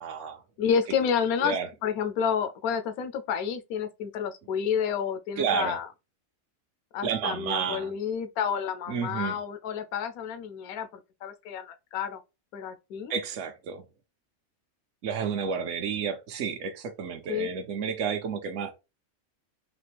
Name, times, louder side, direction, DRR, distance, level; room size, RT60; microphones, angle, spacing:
voice 1, 0.0-0.4 1.4-1.7 5.4-5.8 7.0-7.9 8.9-9.4 13.1-13.8 15.0-18.7, right 6 dB, 65° right, 0.9 m, -31 dB
voice 2, 0.6-1.6 1.8-5.9 6.9-12.2 12.5-13.1 17.3-17.5, left 7 dB, 85° left, 1.1 m, -30 dB
4.1 x 2.9 x 3.3 m
omnidirectional pair, 1.5 m